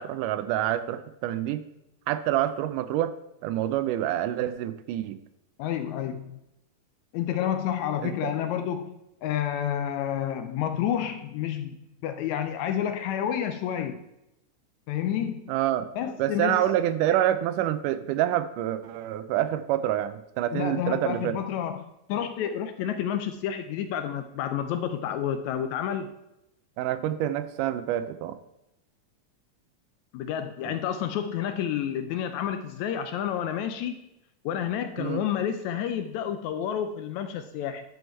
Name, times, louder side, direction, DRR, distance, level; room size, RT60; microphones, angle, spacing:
voice 1, 0.0-1.6 2.1-3.1 3.4-5.2 8.0-8.3 15.5-15.9 16.2-21.4 26.8-28.4 30.6-30.8 35.0-35.2, right 12 dB, 85° right, 12 dB, 2.1 m, -27 dB
voice 2, 5.6-6.4 7.1-8.9 9.2-14.0 14.9-15.5 15.9-16.6 20.5-26.1 30.1-34.0 34.4-37.8, left 9 dB, 80° left, 9 dB, 1.7 m, -30 dB
12.0 x 4.7 x 4.5 m, 0.87 s
omnidirectional pair, 3.6 m